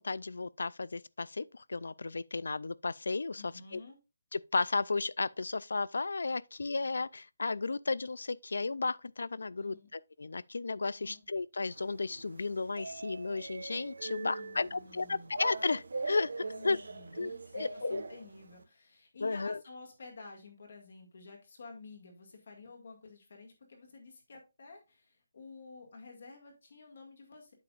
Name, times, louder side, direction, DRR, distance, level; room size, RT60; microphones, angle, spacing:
voice 1, 0.0-3.8 4.3-16.3 16.6-16.8 17.2-18.0 19.2-19.6, left 3 dB, 80° left, 0.3 m, -34 dB
voice 2, 3.4-4.0 9.6-9.9 11.0-11.2 14.0-15.3 16.4-27.5, left 3 dB, 45° left, 1.9 m, -51 dB
sound 1, 11.6-18.6, right 3 dB, 65° right, 1.2 m, -42 dB
8.3 x 6.9 x 2.4 m
hypercardioid pair, 180°, 0 cm